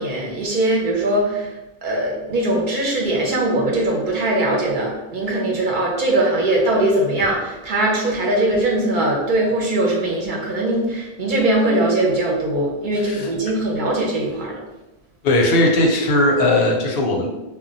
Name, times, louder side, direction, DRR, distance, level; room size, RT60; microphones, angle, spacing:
voice 1, 0.0-14.6, right 1 dB, 55° right, -2 dB, 0.6 m, -21 dB
voice 2, 12.9-13.3 15.2-17.3, left 1 dB, 70° left, 0 dB, 0.8 m, -18 dB
2.1 x 2.1 x 3.8 m, 1.0 s
omnidirectional pair, 1.1 m